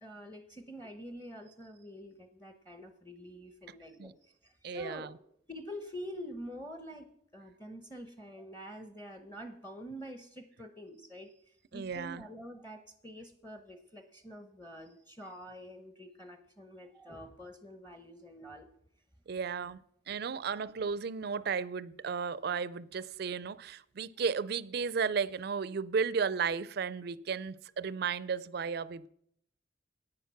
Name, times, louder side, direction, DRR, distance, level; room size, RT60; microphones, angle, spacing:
voice 1, 0.0-5.1 5.5-18.7 20.3-20.4, equal, 10° left, 0.8 m, -47 dB
voice 2, 4.6-5.1 11.7-12.2 19.3-19.8 20.1-29.1, right 6 dB, 55° right, 0.4 m, -34 dB
10.5 x 8.9 x 5.8 m
head